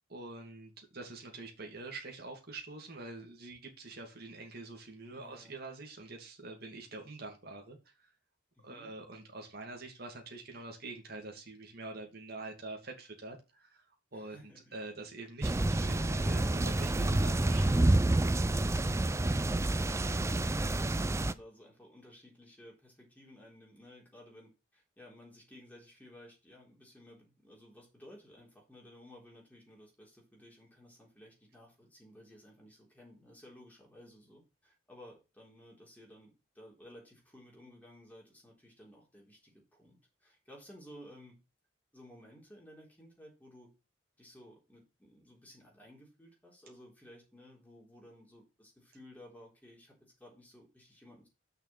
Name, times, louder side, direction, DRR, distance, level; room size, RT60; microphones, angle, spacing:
voice 1, 0.1-8.1 8.6-13.8 14.1-14.4 14.7-17.9, right 3 dB, 50° right, 2.4 m, -45 dB
voice 2, 5.1-5.6 8.5-8.9 14.1-14.8 18.6-41.4 41.9-43.7 44.2-51.3, left 1 dB, 10° left, 3.8 m, -56 dB
sound 1, 15.4-21.3, right 2 dB, 15° right, 0.4 m, -28 dB
6.6 x 5.4 x 7.2 m
head